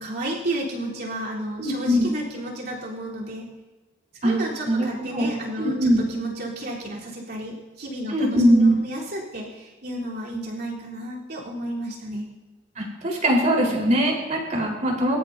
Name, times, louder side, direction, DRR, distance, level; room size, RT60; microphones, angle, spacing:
voice 1, 0.0-3.5 4.2-12.3, right 1 dB, 55° right, -5 dB, 3.9 m, -32 dB
voice 2, 1.6-2.1 4.2-4.4 4.7-6.0 8.1-8.7 12.8-15.2, equal, 40° right, -1 dB, 4.4 m, -21 dB
25.0 x 14.0 x 2.8 m, 1.2 s
head